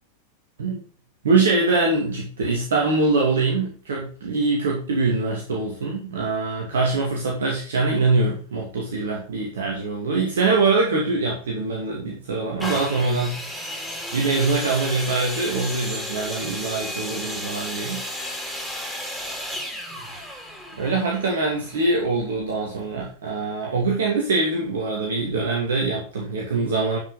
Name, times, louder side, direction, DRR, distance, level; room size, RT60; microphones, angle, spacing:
voice 1, 1.2-13.7 14.1-18.0 20.8-27.0, right 3 dB, 65° right, -1 dB, 2.5 m, -23 dB
Long Saw, 12.6-22.3 23.0-23.1, equal, ahead, 3.6 m, -33 dB
12.0 x 5.8 x 4.0 m, 0.40 s
figure-of-eight pair, 90°, 0 cm